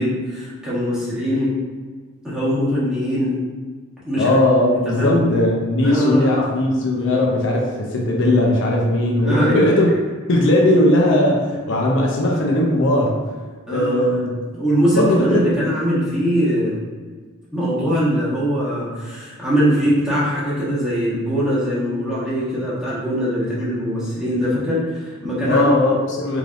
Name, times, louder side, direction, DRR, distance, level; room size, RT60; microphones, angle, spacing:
voice 1, 0.0-1.5 2.2-3.3 4.0-4.4 5.0-5.3 5.8-6.3 9.2-9.7 13.7-14.1 14.5-16.8 17.5-25.7, equal, 5° right, -9 dB, 1.0 m, -21 dB
voice 2, 4.2-9.9 10.3-13.2 13.7-14.4 14.9-15.4 25.4-26.4, left 1 dB, 60° left, -1 dB, 0.5 m, -18 dB
3.6 x 3.3 x 2.5 m, 1.5 s
head